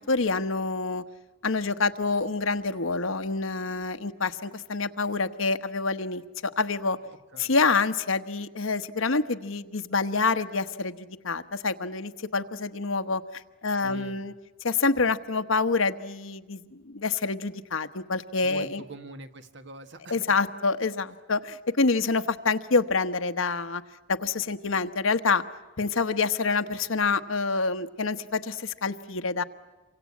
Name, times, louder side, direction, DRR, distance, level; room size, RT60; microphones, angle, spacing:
voice 1, 0.1-1.0 1.4-7.0 7.4-14.3 14.6-18.8 20.1-23.8 24.1-25.4 25.8-29.4, left 4 dB, 85° left, 9 dB, 1.2 m, -27 dB
voice 2, 13.8-14.2 18.4-20.3, right 2 dB, 60° right, 8 dB, 1.8 m, -44 dB
28.0 x 24.5 x 8.6 m, 1.2 s
head